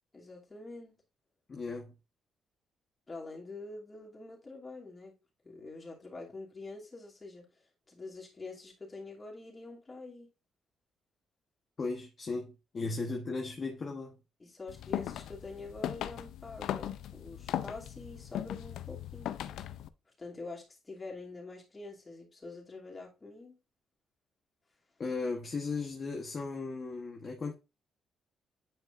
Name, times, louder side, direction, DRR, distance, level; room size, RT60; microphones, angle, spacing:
voice 1, 0.1-1.0 3.1-5.1 5.4-7.5 7.9-10.3 12.8-13.0 14.4-19.4 20.2-23.6, left 3 dB, 25° left, 2.6 m, -46 dB
voice 2, 1.5-1.9 11.8-14.2 25.0-27.5, left 3 dB, 40° left, 1.1 m, -36 dB
sound 1, 14.7-19.9, left 11 dB, 80° left, 0.4 m, -38 dB
9.1 x 4.9 x 2.5 m
cardioid pair, 90°, 0 cm